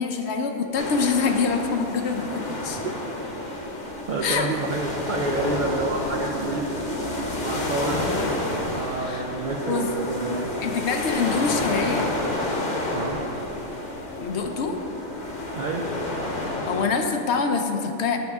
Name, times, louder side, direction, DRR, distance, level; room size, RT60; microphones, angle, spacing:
voice 1, 0.0-2.8 4.2-4.5 9.0-9.2 9.7-9.9 10.6-12.1 14.2-14.7 16.7-18.2, left 5 dB, 60° left, 4 dB, 0.8 m, -25 dB
sound 1, 0.7-16.8, left 1 dB, 40° left, 1.1 m, -30 dB
voice 2, 2.6-3.0 4.1-6.7 7.3-8.1 8.7-10.5 12.9-13.2 15.5-15.9, right 3 dB, 60° right, 1 dB, 0.5 m, -29 dB
10.5 x 6.4 x 3.5 m, 3.0 s
omnidirectional pair, 1.4 m